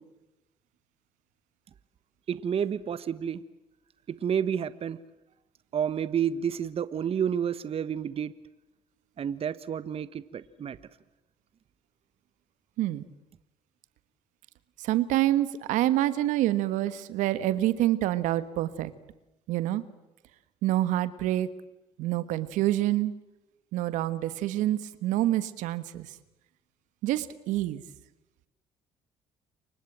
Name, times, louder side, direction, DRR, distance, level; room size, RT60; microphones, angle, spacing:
voice 1, 2.3-3.4 4.2-5.0 5.7-8.3 9.2-10.8, right 8 dB, 50° right, 15 dB, 1.3 m, -30 dB
voice 2, 14.8-18.9 19.5-19.8 20.6-21.5 22.0-23.1 23.7-26.1 27.0-27.8, right 14 dB, 75° right, 14 dB, 1.5 m, -27 dB
29.0 x 24.0 x 7.5 m, 0.99 s
supercardioid pair, 65°, 13 cm